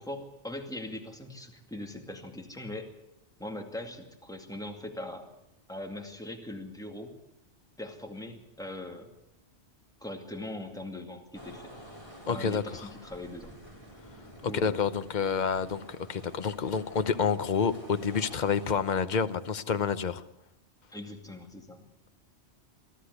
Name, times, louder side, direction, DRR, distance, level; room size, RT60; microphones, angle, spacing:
voice 1, 0.0-2.9 3.4-5.3 5.7-7.1 7.8-9.1 10.0-11.6 12.3-13.5 14.5-14.8 20.9-21.9, left 1 dB, 5° left, 2.3 m, -40 dB
sound 1, 11.3-18.8, equal, 30° left, 4.2 m, -49 dB
voice 2, 12.3-12.6 14.4-20.2, left 6 dB, 45° left, 1.0 m, -28 dB
23.5 x 13.5 x 8.2 m
omnidirectional pair, 1.2 m